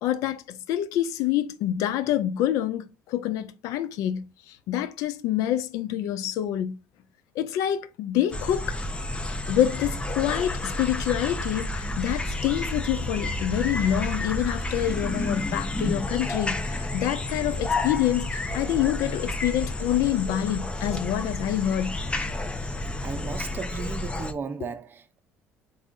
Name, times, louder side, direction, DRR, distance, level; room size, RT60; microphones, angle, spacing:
voice 1, 0.0-4.3 4.7-6.8 7.4-8.8 9.5-22.0, left 11 dB, 70° left, 0.5 m, -27 dB
sound 1, 8.3-24.3, left 2 dB, 20° left, 0.7 m, -30 dB
voice 2, 23.0-25.2, right 5 dB, 35° right, 0.6 m, -35 dB
3.6 x 3.5 x 4.0 m
supercardioid pair, 75°, 6 cm